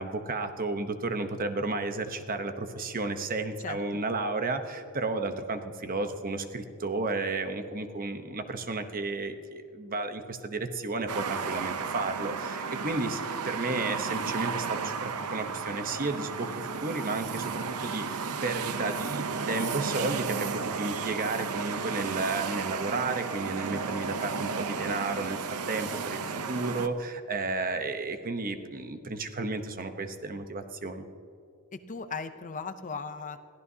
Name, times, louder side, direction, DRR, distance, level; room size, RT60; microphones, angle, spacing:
voice 1, 0.0-31.0, right 3 dB, 40° right, 7 dB, 0.9 m, -33 dB
voice 2, 3.6-4.0 31.7-33.6, left 5 dB, 35° left, 9 dB, 0.6 m, -38 dB
sound 1, 11.1-26.9, right 5 dB, 80° right, 0.7 m, -33 dB
22.0 x 15.0 x 2.8 m, 2.5 s
head